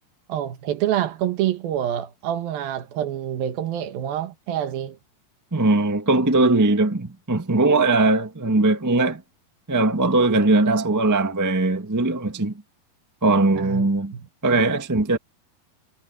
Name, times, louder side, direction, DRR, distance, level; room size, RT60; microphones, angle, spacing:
voice 1, 0.3-5.0 13.6-14.2, right 11 dB, 75° right, 3.1 m, -27 dB
voice 2, 5.5-9.2 9.7-12.5 13.2-14.1 14.4-15.2, right 2 dB, 30° right, 0.3 m, -20 dB
omnidirectional pair, 4.3 m